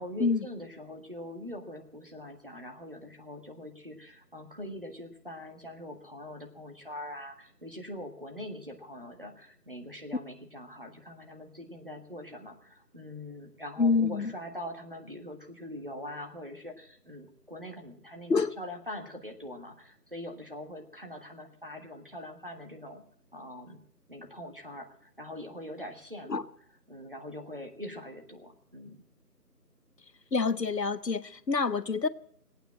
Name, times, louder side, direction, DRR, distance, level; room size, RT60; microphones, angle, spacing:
voice 1, 0.0-23.0 23.3-23.8 24.1-26.4 26.9-29.0, left 1 dB, 35° right, 1.6 m, -43 dB
voice 2, 13.8-14.3 18.3-18.6 26.3-26.5 30.3-32.1, left 4 dB, 85° left, 1.1 m, -27 dB
18.5 x 9.2 x 7.5 m
figure-of-eight pair, 175°, 48 cm